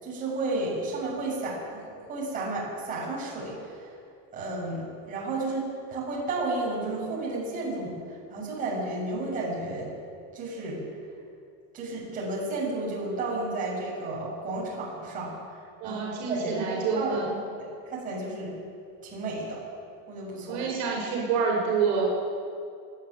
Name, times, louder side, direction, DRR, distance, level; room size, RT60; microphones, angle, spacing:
voice 1, 0.0-3.9 4.3-8.0 8.3-9.9 10.3-10.8 11.7-15.3 15.8-16.0 16.3-17.2 17.6-18.6 19.0-19.6 20.1-20.6, right 2 dB, 20° right, -6 dB, 7.2 m, -32 dB
voice 2, 15.8-17.4 20.5-22.1, right 5 dB, 50° right, -3 dB, 6.3 m, -27 dB
24.5 x 11.5 x 9.7 m, 2.4 s
cardioid pair, 170°, 36 cm